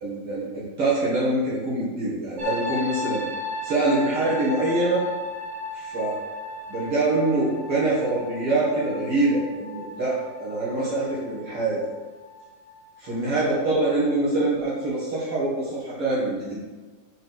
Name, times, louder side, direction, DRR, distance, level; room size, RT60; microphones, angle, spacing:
voice 1, 0.0-3.2 3.6-5.0 5.7-6.1 6.7-11.8 13.0-16.6, right 2 dB, 80° right, -7 dB, 1.2 m, -24 dB
sound 1, 2.4-14.1 14.4-14.8, left 2 dB, 45° right, 1.4 m, -36 dB
9.5 x 4.5 x 6.2 m, 1.3 s
omnidirectional pair, 5.7 m